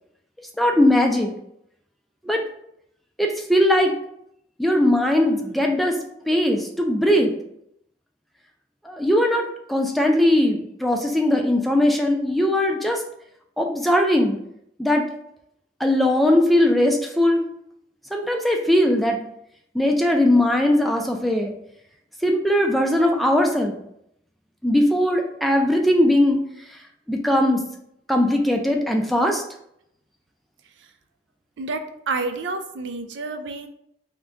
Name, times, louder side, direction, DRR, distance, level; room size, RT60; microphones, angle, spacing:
voice 1, 0.6-1.3 2.2-2.4 3.2-3.9 4.6-6.0 6.3-7.3 8.8-13.0 13.6-14.4 14.8-15.0 15.8-17.4 18.1-19.2 19.7-21.5 22.2-23.7 24.6-26.4 27.1-27.6 28.1-29.4, left 1 dB, ahead, 2 dB, 0.4 m, -19 dB
voice 2, 31.6-33.7, right 3 dB, 85° right, 8 dB, 0.4 m, -29 dB
3.7 x 2.2 x 3.6 m, 0.74 s
head